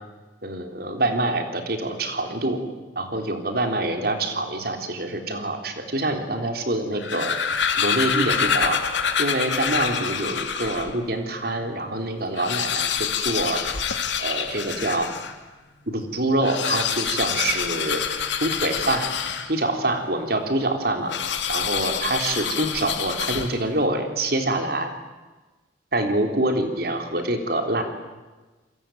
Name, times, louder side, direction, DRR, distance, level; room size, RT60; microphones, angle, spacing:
voice 1, 0.4-2.6 3.0-7.3 7.8-8.8 9.2-13.6 14.2-15.1 15.9-18.0 18.4-19.1 19.5-21.1 21.5-24.9 25.9-27.8, right 2 dB, 55° right, 5 dB, 3.7 m, -25 dB
sound 1, 6.8-11.0 11.5-11.6 11.8-11.9 12.3-15.4 16.3-19.8 21.1-23.8, left 7 dB, 75° left, 2.6 m, -26 dB
28.5 x 22.5 x 9.3 m, 1.2 s
head